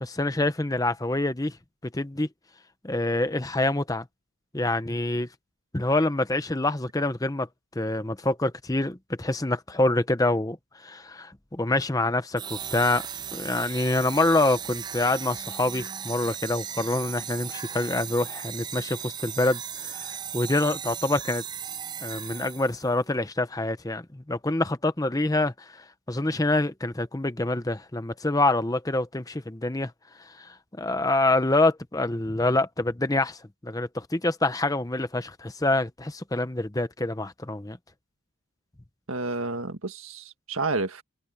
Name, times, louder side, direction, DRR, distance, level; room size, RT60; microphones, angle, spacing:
voice 1, 0.0-1.6 1.9-2.3 2.8-4.1 4.5-5.3 5.7-7.5 7.7-13.0 13.3-21.4 22.0-29.9 30.2-37.8, left 2 dB, 15° left, 0.8 m, -26 dB
sound 1, 12.4-22.9, right 8 dB, 20° right, 0.3 m, -37 dB
voice 2, 39.1-41.0, right 3 dB, 80° right, 1.7 m, -30 dB
head